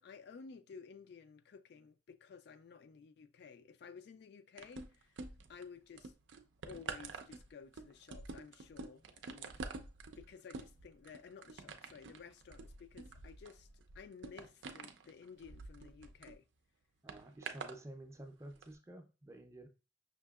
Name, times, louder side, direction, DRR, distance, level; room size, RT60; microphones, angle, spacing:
voice 1, 0.0-5.1 5.5-6.1 6.6-9.5 10.2-13.7 13.9-16.4, left 6 dB, 65° left, 0.3 m, -54 dB
sound 1, 4.6-5.6 6.0-16.3 17.1-17.8 18.5-18.6, right 4 dB, 90° right, 0.5 m, -48 dB
voice 2, 17.0-19.7, right 1 dB, 15° right, 0.5 m, -51 dB
5.7 x 2.7 x 2.3 m
head